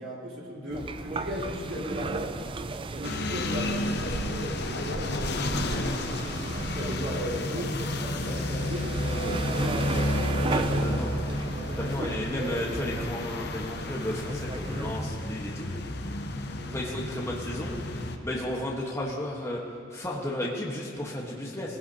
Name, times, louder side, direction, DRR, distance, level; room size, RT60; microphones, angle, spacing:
voice 1, 0.0-2.3 2.9-6.1 6.4-7.7 8.0-10.0 16.6-16.8, equal, 70° right, -6 dB, 3.9 m, -37 dB
sound 1, 0.7-15.0, right 3 dB, 25° right, 0.4 m, -35 dB
sound 2, 3.0-18.2, left 1 dB, 55° left, 0.8 m, -31 dB
voice 2, 10.5-11.1 11.8-15.7 16.7-19.6 19.9-21.8, left 1 dB, 15° left, -3 dB, 1.3 m, -33 dB
19.0 x 16.0 x 2.9 m, 2.4 s
head